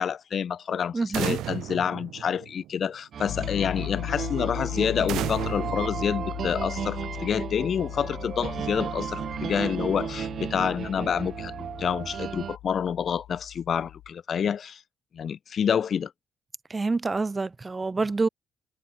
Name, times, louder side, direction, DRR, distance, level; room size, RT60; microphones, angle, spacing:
voice 1, 0.0-11.5 11.8-14.8 15.2-16.1, left 7 dB, 55° left, 0.4 m, -28 dB
voice 2, 0.9-1.4 16.7-18.3, right 3 dB, 25° right, 2.2 m, -27 dB
sound 1, 1.1-2.9 5.1-6.9, right 14 dB, 85° right, 3.3 m, -34 dB
sound 2, 3.1-12.6, right 8 dB, 55° right, 2.2 m, -34 dB
Piano, 3.3-14.1, left 15 dB, 90° left, 0.7 m, -38 dB
cardioid pair, 90°, 0 cm